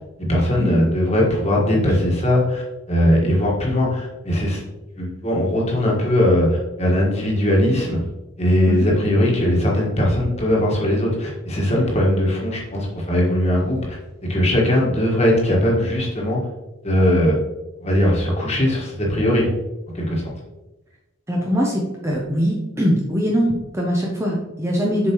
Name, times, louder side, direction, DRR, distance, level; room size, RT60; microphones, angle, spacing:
voice 1, 0.2-4.6 5.0-8.0 8.4-14.0 14.3-16.4 16.8-17.4 17.8-19.5 19.9-20.3, left 1 dB, 30° left, -3 dB, 1.5 m, -19 dB
voice 2, 21.3-25.1, equal, 15° right, -2 dB, 0.7 m, -22 dB
7.1 x 4.8 x 3.0 m, 1.0 s
head